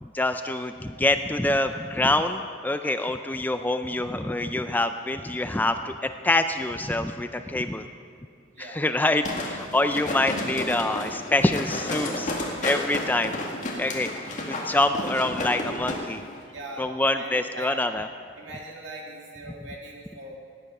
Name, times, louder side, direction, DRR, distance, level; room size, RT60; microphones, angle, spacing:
voice 1, 0.0-7.9 8.6-12.4 12.6-13.4 13.8-16.2 16.8-18.1, left 2 dB, 10° left, 8 dB, 0.3 m, -26 dB
sound 1, 9.2-16.0 16.3-16.4, left 1 dB, 40° left, 2.0 m, -31 dB
voice 2, 16.5-17.7 18.4-20.4, right 1 dB, 65° right, -2 dB, 2.6 m, -40 dB
17.0 x 9.9 x 5.4 m, 2.2 s
head